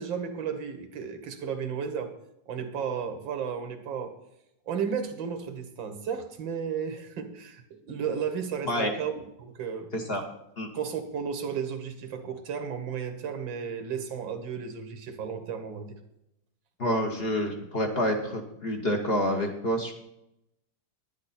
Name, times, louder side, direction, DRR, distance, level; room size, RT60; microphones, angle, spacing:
voice 1, 0.0-2.1 2.5-4.2 4.7-9.9 10.7-16.0, right 7 dB, 85° right, 8 dB, 2.0 m, -33 dB
voice 2, 16.8-19.9, equal, 35° left, 2 dB, 1.3 m, -28 dB
11.0 x 10.5 x 4.2 m, 0.83 s
omnidirectional pair, 2.0 m